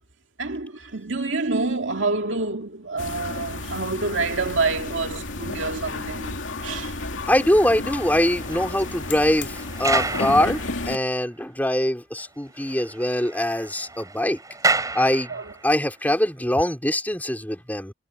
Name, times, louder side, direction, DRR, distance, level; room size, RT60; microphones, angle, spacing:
voice 1, 0.4-6.3 6.6-6.9 15.3-15.4, right 3 dB, 75° right, 2.3 m, -27 dB
sound 1, 3.0-11.0, left 2 dB, 70° left, 2.7 m, -32 dB
voice 2, 7.3-14.4 14.9-15.3 15.6-17.9, left 1 dB, 10° left, 4.1 m, -23 dB
sound 2, 7.7-11.2 11.7-11.8 12.2-12.3 12.6-15.8, right 3 dB, 20° right, 3.9 m, -30 dB
head